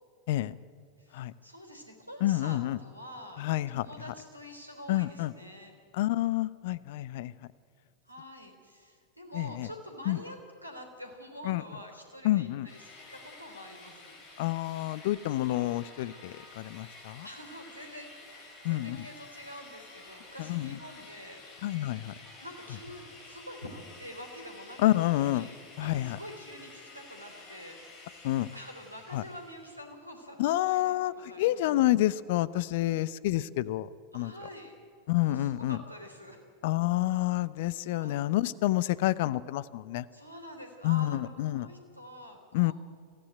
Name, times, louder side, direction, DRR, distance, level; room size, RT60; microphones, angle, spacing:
voice 1, 1.0-3.4 3.7-5.7 8.0-14.1 17.2-21.4 22.4-30.9 31.3-31.6 34.1-34.8 35.2-36.4 38.0-38.1 40.1-42.7, equal, 90° right, 4 dB, 3.4 m, -47 dB
voice 2, 2.2-2.8 3.4-3.9 4.9-5.3 5.9-7.3 9.3-9.7 10.1-10.2 11.4-11.6 12.2-12.7 14.4-17.3 18.6-19.1 20.5-20.8 21.6-22.1 24.8-25.5 25.8-26.2 28.2-28.5 29.1-29.2 30.4-33.9 34.1-34.3 35.1-35.8 36.6-40.1 40.8-41.7 42.5-42.7, left 15 dB, 50° left, 19 dB, 0.7 m, -28 dB
sound 1, 12.7-29.8, left 3 dB, 35° left, 4.9 m, -51 dB
22.5 x 16.0 x 9.2 m, 2.2 s
figure-of-eight pair, 90°, 0 cm